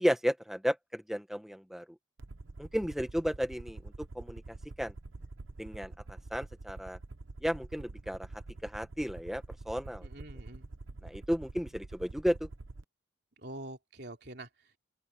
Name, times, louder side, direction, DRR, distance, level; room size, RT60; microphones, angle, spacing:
voice 1, 0.0-1.8 2.6-4.9 5.6-7.0 7.4-8.3 8.6-10.1 11.0-12.5, equal, ahead, 1.3 m, -33 dB
Aircraft, 2.2-12.8, right 2 dB, 85° right, 0.9 m, -46 dB
voice 2, 10.0-10.7 13.4-14.8, right 1 dB, 55° right, 3.2 m, -46 dB
open air
head